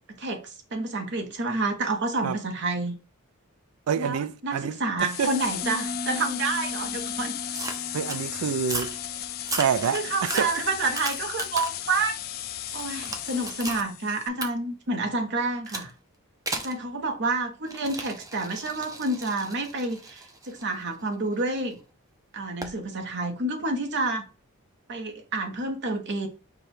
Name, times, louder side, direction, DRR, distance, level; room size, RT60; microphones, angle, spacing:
voice 1, 0.2-2.9 4.0-7.4 9.9-12.2 12.7-15.9 16.6-21.8 22.3-24.3 24.9-26.3, right 2 dB, 55° right, 1.0 m, -29 dB
voice 2, 3.9-5.3 7.9-9.0 9.6-10.5, right 7 dB, 85° right, 0.4 m, -27 dB
sound 1, 5.0-14.3, left 12 dB, 45° left, 0.3 m, -35 dB
Piano, 5.6-11.2, equal, 15° left, 0.7 m, -40 dB
sound 2, 7.5-8.2 8.6-9.0 9.4-11.9 12.3-13.8 14.4-14.5 15.7-15.9 16.5-16.8 17.6-21.6 22.6-22.8, right 2 dB, 15° right, 0.5 m, -36 dB
4.9 x 2.2 x 4.3 m
head